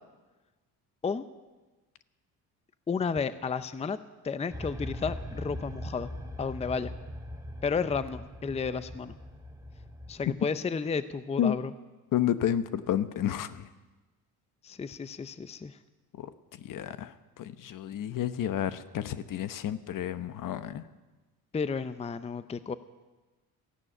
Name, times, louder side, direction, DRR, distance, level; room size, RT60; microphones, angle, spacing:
voice 1, 2.9-4.0 4.2-6.1 6.4-6.9 7.6-9.1 10.1-11.7 14.6-15.8 21.5-22.8, left 5 dB, 20° left, 13 dB, 0.6 m, -32 dB
sound 1, 4.5-10.3, equal, 10° right, 2.1 m, -41 dB
voice 2, 12.1-13.7 16.2-16.3 16.6-20.8, left 10 dB, 60° left, 12 dB, 1.0 m, -31 dB
15.0 x 11.0 x 8.8 m, 1.2 s
cardioid pair, 95°, 36 cm